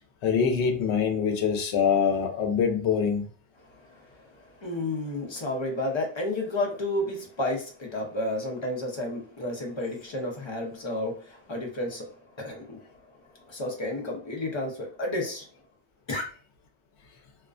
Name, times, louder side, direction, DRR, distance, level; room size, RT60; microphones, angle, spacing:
voice 1, 0.2-3.3, left 6 dB, 90° left, 5 dB, 0.9 m, -24 dB
voice 2, 3.6-15.5 16.1-16.2, left 1 dB, 30° left, 0 dB, 0.6 m, -32 dB
2.4 x 2.2 x 2.4 m, 0.39 s
omnidirectional pair, 1.1 m